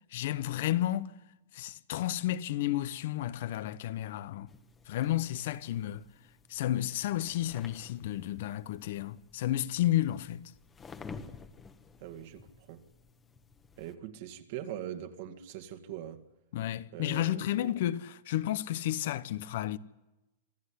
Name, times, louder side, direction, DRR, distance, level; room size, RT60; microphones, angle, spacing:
voice 1, 0.1-1.1 1.5-4.5 4.9-6.0 6.5-10.5 16.5-19.8, left 13 dB, 60° left, 1.0 m, -32 dB
sound 1, 4.5-13.9, left 5 dB, 15° left, 1.3 m, -52 dB
voice 2, 12.0-12.8 13.8-16.2 16.9-17.5, right 11 dB, 55° right, 2.0 m, -42 dB
26.5 x 14.0 x 9.9 m
hypercardioid pair, 145°, 0 cm